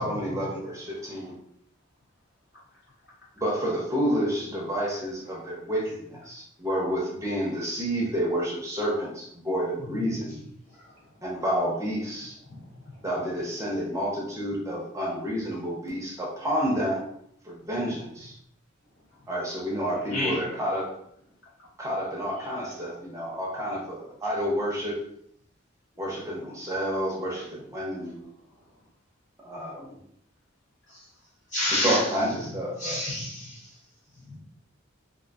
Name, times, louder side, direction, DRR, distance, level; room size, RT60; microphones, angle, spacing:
voice 1, 0.0-1.3 3.4-10.4 11.2-12.4 13.0-17.0 17.4-18.4 19.3-20.9 21.8-25.0 26.0-28.2 29.4-29.9 31.7-33.0, equal, 15° right, -4 dB, 0.6 m, -29 dB
voice 2, 0.9-1.3 2.7-2.8 10.6-11.4 12.4-13.1 18.9-19.3 19.9-20.0 21.6-21.7 27.9-28.8, equal, 55° left, -6 dB, 1.1 m, -59 dB
voice 3, 31.5-32.1 32.8-33.7 34.3-34.4, left 1 dB, 35° left, -6 dB, 0.7 m, -29 dB
2.5 x 2.5 x 2.3 m, 0.70 s
head